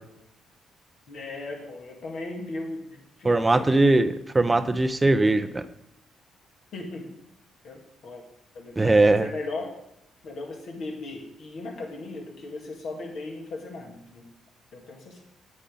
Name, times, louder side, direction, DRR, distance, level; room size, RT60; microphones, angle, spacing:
voice 1, 1.1-4.0 5.2-5.4 6.7-7.1 7.6-8.2 8.5-9.7 10.2-14.3 14.7-15.2, left 2 dB, 55° left, 1 dB, 1.9 m, -37 dB
voice 2, 3.2-5.6 8.8-9.3, right 2 dB, 20° right, 13 dB, 0.6 m, -20 dB
9.9 x 8.1 x 3.8 m, 0.82 s
figure-of-eight pair, 40°, 0 cm